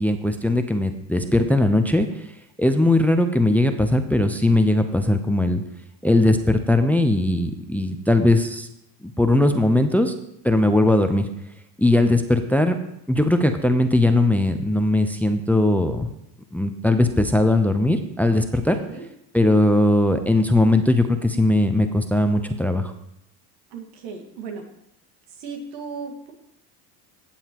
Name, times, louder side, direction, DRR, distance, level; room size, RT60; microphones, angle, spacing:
voice 1, 0.0-2.1 2.6-5.6 6.0-8.7 9.0-10.1 10.4-11.3 11.8-12.8 13.1-16.1 16.5-18.8 19.3-22.9, left 1 dB, 5° left, 7 dB, 0.6 m, -19 dB
voice 2, 18.4-19.0 23.7-24.6 25.4-26.3, right 5 dB, 90° right, 3 dB, 2.0 m, -36 dB
17.0 x 7.3 x 3.0 m, 0.81 s
supercardioid pair, 100°, 49 cm